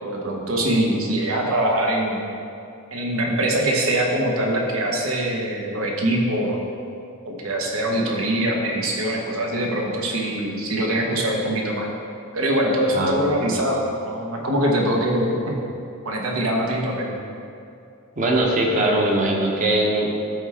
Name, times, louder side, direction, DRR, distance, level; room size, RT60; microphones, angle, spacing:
voice 1, 0.0-2.2 2.9-6.6 7.2-11.9 12.3-15.4 16.0-17.1, right 1 dB, 75° right, 0 dB, 1.2 m, -23 dB
voice 2, 12.9-13.3 18.2-20.1, right 1 dB, 35° right, -1 dB, 1.0 m, -21 dB
12.0 x 4.7 x 3.6 m, 2.5 s
head